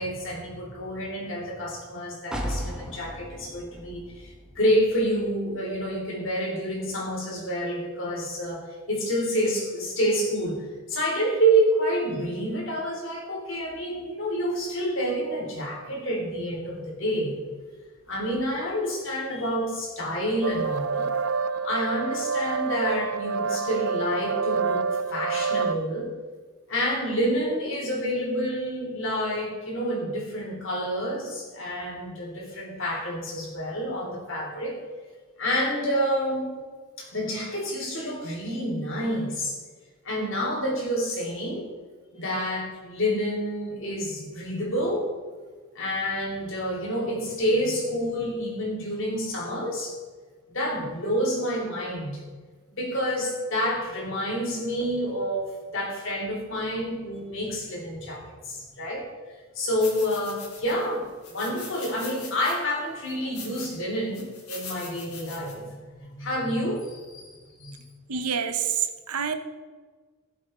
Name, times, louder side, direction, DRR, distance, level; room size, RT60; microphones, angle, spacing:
voice 1, 0.0-17.4 18.1-21.1 21.6-26.1 26.7-34.8 35.4-36.6 37.0-39.6 40.0-41.7 42.1-45.1 45.8-50.0 50.5-52.2 52.7-59.0 59.6-67.2 67.6-67.8, equal, 60° left, -1 dB, 3.6 m, -28 dB
sound 1, 2.3-6.1 6.4-6.5, equal, 5° right, 1.2 m, -37 dB
sound 2, 20.4-25.7, right 5 dB, 65° right, 0.6 m, -27 dB
sound 3, 59.8-60.9 61.2-62.6 63.1-63.8 64.1-65.5, left 5 dB, 80° left, 3.5 m, -42 dB
voice 2, 68.1-69.3, right 7 dB, 85° right, 8 dB, 1.0 m, -27 dB
18.0 x 7.5 x 3.8 m, 1.4 s
head